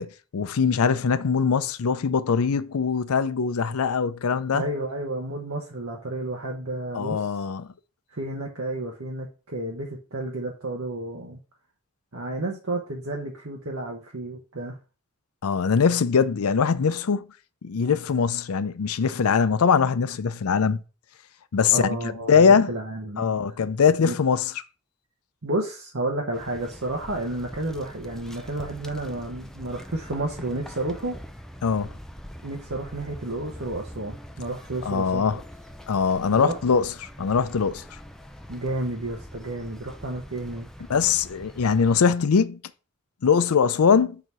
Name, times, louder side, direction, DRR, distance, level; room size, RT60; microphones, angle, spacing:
voice 1, 0.0-4.6 6.9-7.7 15.4-17.3 17.6-20.8 21.5-22.0 22.3-22.7 23.2-24.5 31.6-31.9 34.8-35.4 35.9-36.9 37.2-37.8 40.9-42.6 43.2-44.2, left 6 dB, 90° left, 0.5 m, -22 dB
voice 2, 4.5-7.3 8.1-11.4 12.1-14.8 21.7-23.4 24.0-24.2 25.4-31.2 32.4-35.4 36.4-36.6 38.5-40.7, right 2 dB, 70° right, 1.0 m, -31 dB
sound 1, 26.3-42.0, equal, ahead, 0.4 m, -43 dB
4.7 x 3.9 x 5.4 m
head